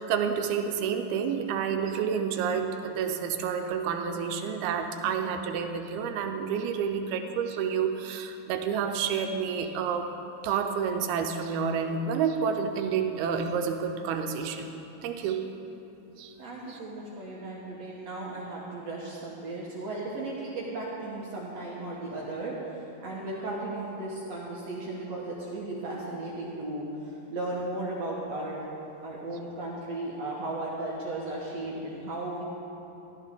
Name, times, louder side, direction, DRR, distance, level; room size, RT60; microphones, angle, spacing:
voice 1, 0.0-10.1 10.4-14.7 15.0-15.5 16.2-16.3 16.7-16.8, right 6 dB, 90° right, 5 dB, 2.6 m, -29 dB
voice 2, 16.4-28.7 29.0-32.4, right 2 dB, 60° right, -5 dB, 1.8 m, -35 dB
15.0 x 12.5 x 3.6 m, 3.0 s
omnidirectional pair, 4.4 m